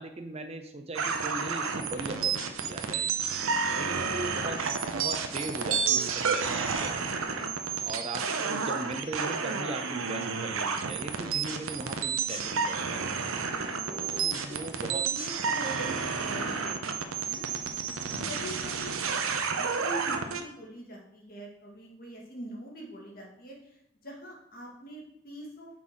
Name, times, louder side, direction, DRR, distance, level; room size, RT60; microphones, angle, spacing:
voice 1, 0.0-3.3 3.8-13.3 13.9-15.1 18.0-18.4, right 2 dB, 30° right, 5 dB, 0.6 m, -39 dB
sound 1, 0.9-20.4, right 5 dB, 80° right, 0.8 m, -31 dB
voice 2, 14.4-17.5 18.2-18.9 19.5-25.7, right 1 dB, 45° left, -1 dB, 1.9 m, -43 dB
6.2 x 4.6 x 5.6 m, 0.77 s
head